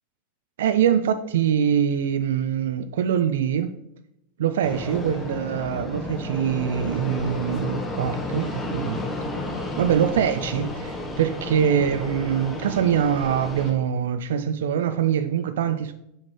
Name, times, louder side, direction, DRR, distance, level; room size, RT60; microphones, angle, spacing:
voice 1, 0.6-3.8 4.4-9.0 9.8-15.9, right 8 dB, 65° right, 10 dB, 0.4 m, -23 dB
Fixed-wing aircraft airplane, 4.6-13.7, left 2 dB, 20° left, 1.7 m, -32 dB
7.3 x 6.2 x 3.2 m, 0.82 s
figure-of-eight pair, 90°, 0 cm